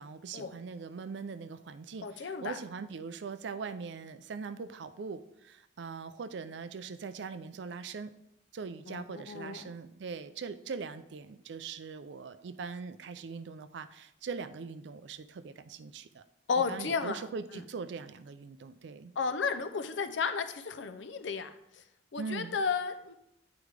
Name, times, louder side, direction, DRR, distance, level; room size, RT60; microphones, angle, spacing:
voice 1, 0.0-8.1 8.5-16.2 16.7-19.1 22.2-22.5, right 5 dB, 70° right, 12 dB, 0.4 m, -41 dB
voice 2, 2.0-2.6 8.9-9.6 16.5-17.2 17.5-17.6 19.2-21.8 22.1-23.1, left 5 dB, 85° left, 10 dB, 0.5 m, -33 dB
8.2 x 4.8 x 3.3 m, 0.81 s
head